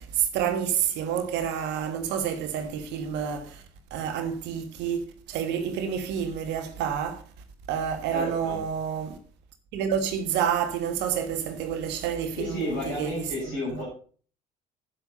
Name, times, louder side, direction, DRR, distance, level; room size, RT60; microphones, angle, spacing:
voice 1, 0.0-3.6 3.9-7.2 7.7-9.2 9.7-13.2 13.7-13.8, right 8 dB, 60° right, 1.5 m, -29 dB
voice 2, 8.1-8.6 12.4-13.9, left 1 dB, 65° left, 6.6 m, -32 dB
9.4 x 8.2 x 5.4 m
figure-of-eight pair, 55°, 20 cm